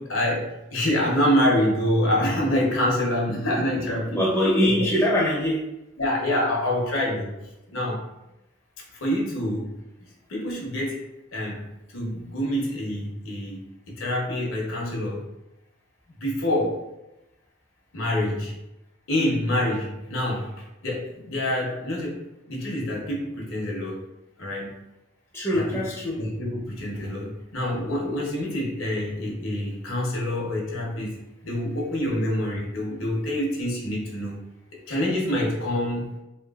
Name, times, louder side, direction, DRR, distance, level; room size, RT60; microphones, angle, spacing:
voice 1, 0.0-4.2 4.6-4.9 6.0-7.3 7.7-8.0 9.0-9.8 10.3-11.6 11.9-13.6 13.9-15.3 16.2-16.8 17.9-18.5 19.1-24.1 24.4-24.7 25.5-25.8 26.2-31.2 31.4-34.4 34.9-36.1, left 1 dB, 80° left, -2 dB, 0.8 m, -26 dB
voice 2, 4.2-5.6 25.3-26.2, equal, 10° left, -6 dB, 0.4 m, -22 dB
3.0 x 2.6 x 2.3 m, 0.96 s
head